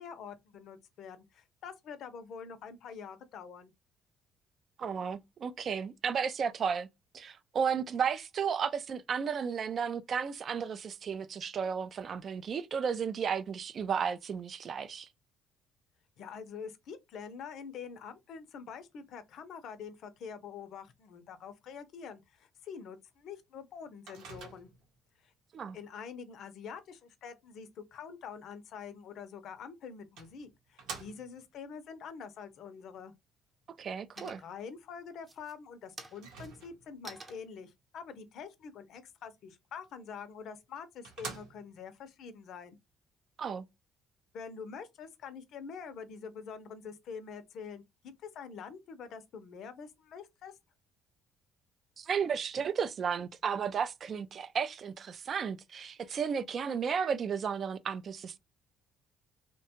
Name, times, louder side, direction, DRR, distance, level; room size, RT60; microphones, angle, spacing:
voice 1, 0.0-3.7 16.2-24.7 25.2-25.3 25.7-33.1 34.2-42.8 44.3-47.8 48.2-50.5, left 6 dB, 65° left, 0.5 m, -46 dB
voice 2, 4.8-6.9 7.1-15.1 25.5-25.8 33.8-34.4 43.4-43.6 52.0-58.4, right 6 dB, 45° right, 0.3 m, -33 dB
Microwave oven, 24.1-25.0 29.3-29.4 30.2-31.5 36.1-37.0 40.2-40.3 40.7-40.8 41.0-41.9, right 4 dB, 90° right, 0.9 m, -46 dB
sound 1, 32.5-33.1 33.5-33.9 34.2-34.7 35.2-39.6, right 2 dB, 30° right, 0.8 m, -52 dB
2.8 x 2.2 x 2.8 m
cardioid pair, 105°, 0 cm